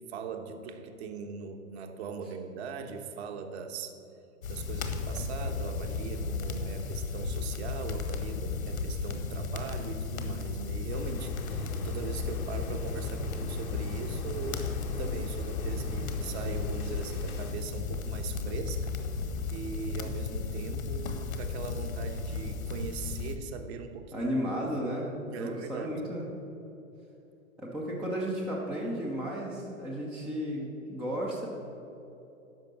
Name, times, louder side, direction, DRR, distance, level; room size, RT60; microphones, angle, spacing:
voice 1, 0.1-3.9 4.5-14.7 15.0-18.9 19.5-24.3 25.3-25.9, right 5 dB, 50° right, 6 dB, 1.1 m, -40 dB
sound 1, 4.4-23.4, left 4 dB, 70° left, 1.3 m, -34 dB
sound 2, 10.9-17.5, left 3 dB, 85° left, 1.3 m, -43 dB
voice 2, 24.1-26.3 27.6-31.5, equal, ahead, -3 dB, 0.4 m, -33 dB
12.0 x 5.1 x 7.4 m, 2.9 s
hypercardioid pair, 120°, 42 cm